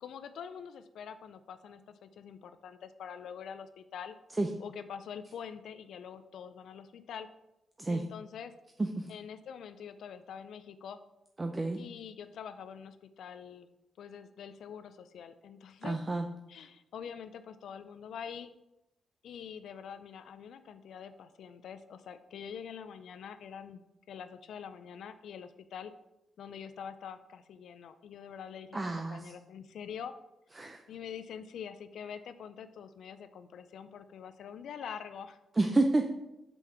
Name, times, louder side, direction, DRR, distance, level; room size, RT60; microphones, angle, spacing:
voice 1, 0.0-4.1 4.6-7.3 7.9-8.5 9.1-11.0 11.8-13.7 14.0-16.0 16.5-18.5 19.2-23.8 24.1-25.9 26.4-30.1 30.9-35.4, left 7 dB, 80° left, 11 dB, 0.4 m, -45 dB
voice 2, 11.4-11.8 15.8-16.2 28.7-29.3 30.6-30.8 35.6-36.0, right 2 dB, 25° right, 4 dB, 0.6 m, -29 dB
5.3 x 4.7 x 5.7 m, 0.91 s
cardioid pair, 80°, 0 cm